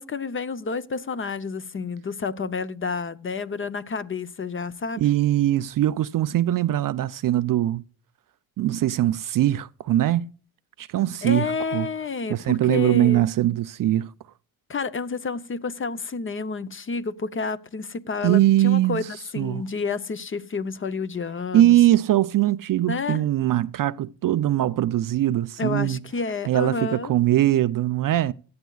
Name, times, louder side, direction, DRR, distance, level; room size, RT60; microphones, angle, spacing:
voice 1, 0.0-5.0 11.2-13.3 14.7-21.8 22.9-23.2 25.6-27.1, left 4 dB, 25° left, 0.7 m, -30 dB
voice 2, 5.0-7.8 8.6-10.3 10.8-11.9 12.3-14.1 18.2-19.1 19.4-19.6 21.5-26.0 26.5-28.3, right 13 dB, 45° right, 0.5 m, -21 dB
17.5 x 12.0 x 2.3 m
cardioid pair, 105°, 46 cm